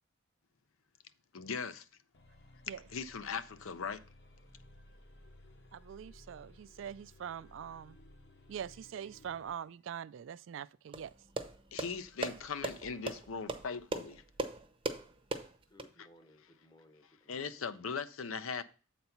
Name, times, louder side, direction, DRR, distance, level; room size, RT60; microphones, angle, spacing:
voice 1, 1.3-1.9 2.9-4.0 11.7-14.2 16.0-16.1 17.3-18.6, left 5 dB, 85° left, 0.6 m, -39 dB
sound 1, 2.1-9.6, left 1 dB, 55° left, 1.2 m, -58 dB
voice 2, 5.7-8.0 8.5-11.2, right 8 dB, 65° right, 0.3 m, -43 dB
sound 2, 10.9-15.9, right 2 dB, 25° right, 0.7 m, -39 dB
voice 3, 15.7-17.7, left 1 dB, 20° left, 0.8 m, -62 dB
7.8 x 4.1 x 5.8 m
head